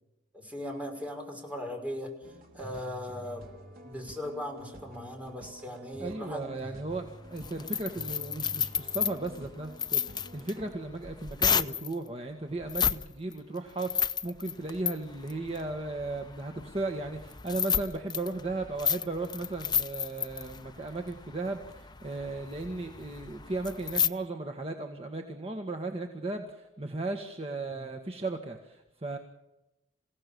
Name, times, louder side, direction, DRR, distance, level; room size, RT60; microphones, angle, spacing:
voice 1, 0.3-3.5 3.8-6.5 27.7-27.9, left 1 dB, 10° right, 1 dB, 5.9 m, -39 dB
sound 1, 2.2-10.8, equal, 50° right, 3.5 m, -48 dB
voice 2, 6.0-29.2, right 2 dB, 30° right, 4 dB, 1.7 m, -36 dB
sound 2, 6.9-11.9 12.6-13.0 13.3-24.1, left 8 dB, 20° left, 0.7 m, -32 dB
28.0 x 17.0 x 7.0 m, 0.94 s
head